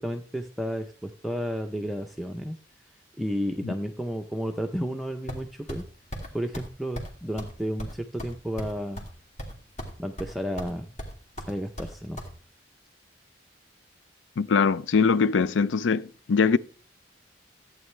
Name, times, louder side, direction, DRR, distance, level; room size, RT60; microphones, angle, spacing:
voice 1, 0.0-2.6 3.2-5.8 6.3-9.0 10.0-10.9 11.5-12.2, equal, ahead, 0.5 m, -32 dB
sound 1, 5.3-5.8 6.1-6.3 6.5-6.7 7.0-7.1 7.4-7.5 7.8-9.1 9.4-9.9 10.2-10.7 11.0-12.3, equal, 40° left, 2.2 m, -37 dB
voice 2, 14.4-16.6, left 5 dB, 80° left, 0.4 m, -22 dB
14.5 x 8.8 x 3.2 m
head